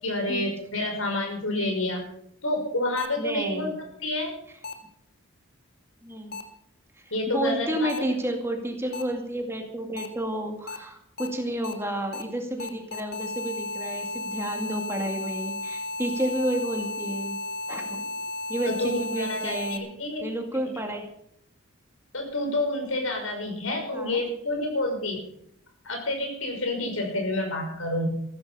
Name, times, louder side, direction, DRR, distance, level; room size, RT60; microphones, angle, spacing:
voice 1, 0.0-2.0 2.4-3.7 4.0-4.3 7.1-8.2 18.7-20.3 22.1-25.2 25.8-28.1, left 2 dB, 80° left, 3 dB, 5.8 m, -29 dB
sound 1, 3.0-3.1 4.6-4.7 6.3-6.4 7.9-8.0 8.9-9.0 10.0-10.1 10.7-10.8 11.2-11.3 11.6-11.7 12.1-12.2 12.6-19.8, left 2 dB, 50° left, 2.0 m, -34 dB
voice 2, 3.2-3.7 6.0-6.4 7.3-17.4 17.7-18.0 18.5-19.9 20.2-21.1 23.9-24.2, right 1 dB, 10° right, 3 dB, 2.1 m, -30 dB
14.5 x 14.0 x 5.5 m, 0.70 s
head